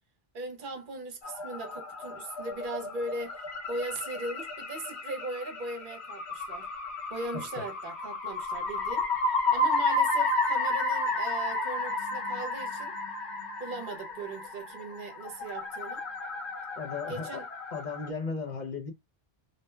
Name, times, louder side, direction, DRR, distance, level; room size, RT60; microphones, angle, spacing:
voice 1, 0.3-3.4 3.7-6.7 7.1-12.9 13.6-16.0 17.1-17.4, right 2 dB, 55° right, 0.8 m, -39 dB
sound 1, 1.2-18.1, left 2 dB, 90° left, 1.1 m, -32 dB
voice 2, 16.8-17.4 17.7-18.9, left 5 dB, 50° left, 0.7 m, -35 dB
2.7 x 2.2 x 3.1 m
omnidirectional pair, 1.1 m